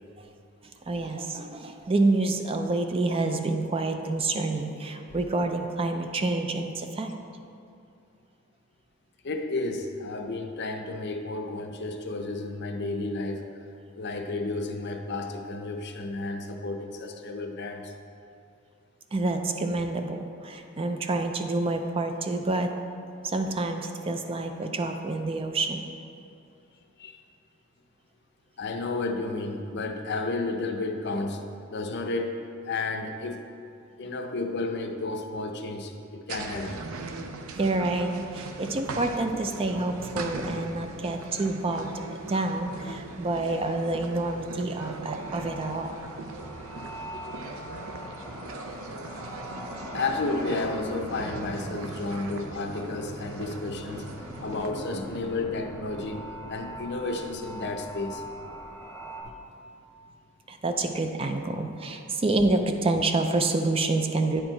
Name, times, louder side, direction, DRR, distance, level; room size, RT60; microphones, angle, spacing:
voice 1, 0.9-7.1 19.1-22.7 23.2-25.9 37.6-41.9 42.3-46.0 60.5-64.4, right 2 dB, 25° right, 6 dB, 0.4 m, -28 dB
voice 2, 9.2-13.4 14.0-17.9 27.0-27.2 28.6-31.4 31.7-32.3 32.6-33.4 34.0-36.8 43.1-43.2 49.9-58.2 59.2-59.3, left 3 dB, 55° left, 5 dB, 0.6 m, -32 dB
sound 1, 36.3-54.7, right 3 dB, 75° right, 0.5 m, -40 dB
sound 2, 45.2-59.2, equal, 10° left, 0.8 m, -42 dB
9.4 x 4.5 x 4.4 m, 2.6 s
head